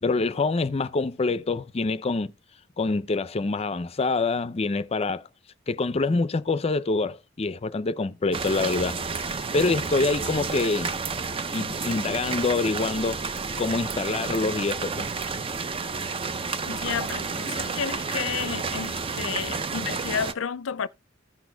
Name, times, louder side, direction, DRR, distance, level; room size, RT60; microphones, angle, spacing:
voice 1, 0.0-2.3 2.8-5.2 5.7-9.2 9.5-11.0 11.5-13.3 13.6-15.1, left 3 dB, 30° left, 0.5 m, -26 dB
sound 1, 8.3-20.3, right 4 dB, 30° right, 0.5 m, -31 dB
voice 2, 16.6-20.9, left 7 dB, 80° left, 0.5 m, -31 dB
15.5 x 6.1 x 2.3 m
head